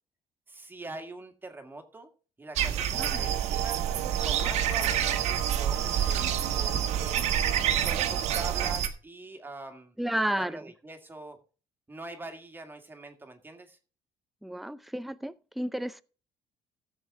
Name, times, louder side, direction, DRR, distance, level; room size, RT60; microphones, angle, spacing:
voice 1, 0.5-2.1 2.4-3.8 4.2-7.3 7.8-9.9 10.4-11.4 11.9-13.8, right 2 dB, 15° right, 1.9 m, -43 dB
sound 1, 2.6-8.9, right 9 dB, 65° right, 1.5 m, -28 dB
voice 2, 2.8-3.2 10.0-10.6 14.4-16.0, right 1 dB, ahead, 0.5 m, -32 dB
sound 2, 2.9-8.8, right 15 dB, 90° right, 0.6 m, -36 dB
15.5 x 7.3 x 3.6 m
cardioid pair, 120°, 12 cm